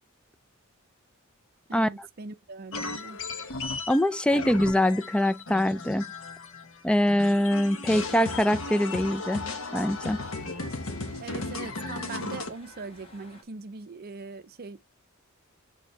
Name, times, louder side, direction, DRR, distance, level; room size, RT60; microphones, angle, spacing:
voice 1, 1.7-3.2 11.2-14.8, right 4 dB, 45° right, 0.6 m, -41 dB
sound 1, 2.7-6.8 7.1-12.5, left 3 dB, 70° left, 1.2 m, -35 dB
voice 2, 3.9-6.1 6.8-9.4 9.7-10.2, left 1 dB, 5° left, 0.3 m, -23 dB
sound 2, 7.8-13.4, left 1 dB, 25° left, 1.8 m, -53 dB
7.1 x 4.3 x 3.2 m
head